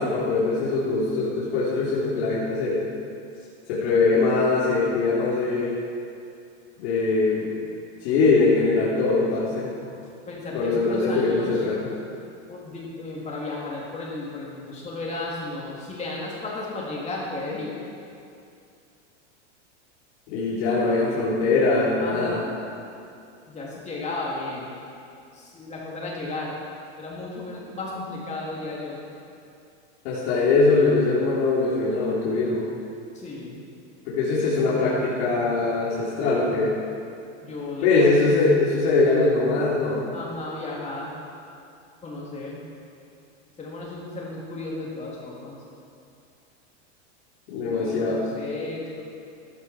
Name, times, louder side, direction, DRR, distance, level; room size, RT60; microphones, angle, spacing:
voice 1, 0.0-2.8 3.7-5.8 6.8-7.5 8.0-9.7 10.5-11.9 20.3-22.4 30.0-32.7 34.1-36.7 37.8-40.0 47.5-48.2, left 3 dB, 65° left, -8 dB, 3.7 m, -22 dB
voice 2, 10.3-11.6 12.5-17.8 22.0-22.5 23.5-24.7 25.3-26.6 27.0-29.0 33.1-33.7 37.4-38.3 40.1-41.2 42.0-42.6 43.6-45.6 47.5-49.0, left 2 dB, 20° left, -5 dB, 3.7 m, -34 dB
15.0 x 11.5 x 5.0 m, 2.5 s
supercardioid pair, 135°, 35 cm